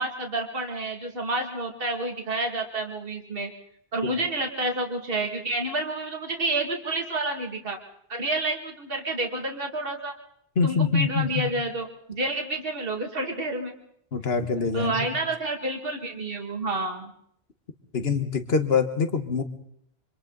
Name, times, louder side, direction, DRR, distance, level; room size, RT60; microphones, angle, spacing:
voice 1, 0.0-3.5 3.9-7.8 8.1-10.1 10.6-13.7 14.7-17.1, right 2 dB, 60° right, 2 dB, 2.5 m, -29 dB
voice 2, 10.6-11.5 14.1-15.1 17.9-19.4, left 5 dB, 70° left, 8 dB, 1.7 m, -24 dB
27.0 x 25.5 x 4.0 m, 0.69 s
omnidirectional pair, 1.1 m